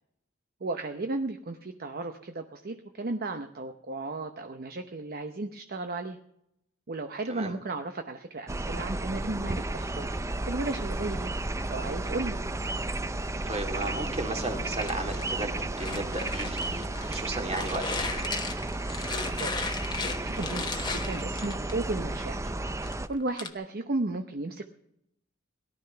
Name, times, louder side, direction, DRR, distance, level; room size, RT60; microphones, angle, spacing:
voice 1, 0.6-6.2 6.9-10.1 10.4-11.3 11.7-12.4 19.4-19.7 20.2-22.5 23.1-24.6, right 2 dB, 50° right, 6 dB, 0.8 m, -34 dB
sound 1, 8.5-23.1, right 2 dB, 15° right, 0.5 m, -33 dB
voice 2, 13.5-18.4, right 2 dB, 30° right, 3 dB, 2.3 m, -35 dB
sound 2, 14.4-17.2 17.5-22.0 22.5-23.5, left 4 dB, 20° left, 1.1 m, -36 dB
18.0 x 12.0 x 5.7 m, 0.77 s
head